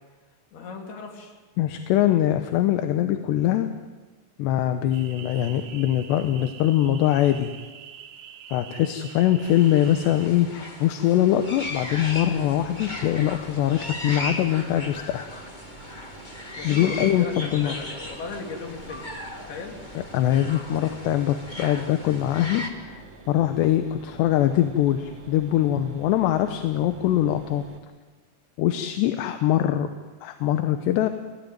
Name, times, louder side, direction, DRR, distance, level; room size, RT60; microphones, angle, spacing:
voice 1, 0.5-1.4 16.6-19.1 19.4-19.8, left 4 dB, 65° left, 3 dB, 4.7 m, -36 dB
voice 2, 1.6-3.7 4.4-7.5 8.5-15.2 16.6-17.8 20.1-27.6 28.6-29.9 30.2-31.1, left 12 dB, 80° left, 8 dB, 3.1 m, -23 dB
sound 1, 4.9-10.3, right 8 dB, 85° right, 3.8 m, -44 dB
sound 2, 9.4-22.7, left 1 dB, 30° left, 0.8 m, -37 dB
Mechanisms, 11.6-27.8, right 3 dB, 45° right, 2.4 m, -47 dB
28.0 x 16.5 x 9.4 m, 1.3 s
omnidirectional pair, 5.0 m